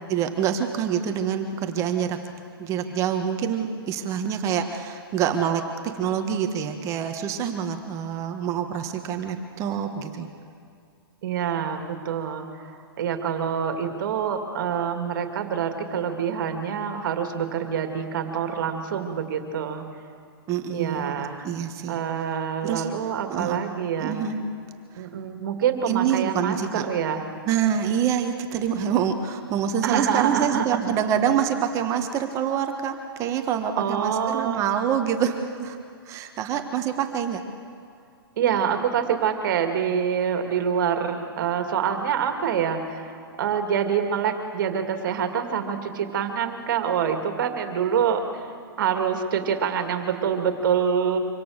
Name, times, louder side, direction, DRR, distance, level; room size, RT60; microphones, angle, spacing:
voice 1, 0.1-2.2 2.6-5.6 5.9-10.3 20.5-22.0 22.6-22.9 23.3-23.6 24.0-24.4 24.9-25.1 25.9-26.8 27.4-35.8 36.1-37.4, right 8 dB, 25° right, 6 dB, 1.4 m, -26 dB
voice 2, 11.2-19.8 20.7-21.5 21.9-24.2 24.9-27.3 29.8-30.9 33.7-34.6 38.4-48.5 48.8-51.2, right 7 dB, 55° right, 6 dB, 2.4 m, -26 dB
25.5 x 17.5 x 6.6 m, 2.4 s
hypercardioid pair, 145°, 13 cm